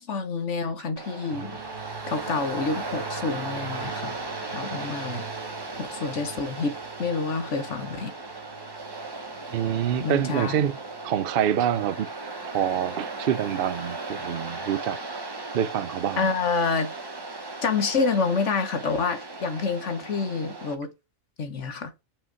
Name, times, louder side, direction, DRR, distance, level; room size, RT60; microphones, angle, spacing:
voice 1, 0.0-1.6 2.1-4.1 4.5-5.3 5.8-6.7 7.0-8.1 10.0-10.5 16.2-16.9 17.6-20.9 21.4-21.9, left 4 dB, 65° left, 1.3 m, -28 dB
Waves surf, 1.0-20.7, right 3 dB, 20° right, 0.9 m, -37 dB
sound 1, 1.3-13.8, right 7 dB, 45° right, 1.2 m, -44 dB
voice 2, 9.5-10.7 11.0-12.1 12.4-15.0 15.5-16.3, right 10 dB, 60° right, 0.6 m, -26 dB
5.5 x 5.2 x 4.6 m
omnidirectional pair, 1.4 m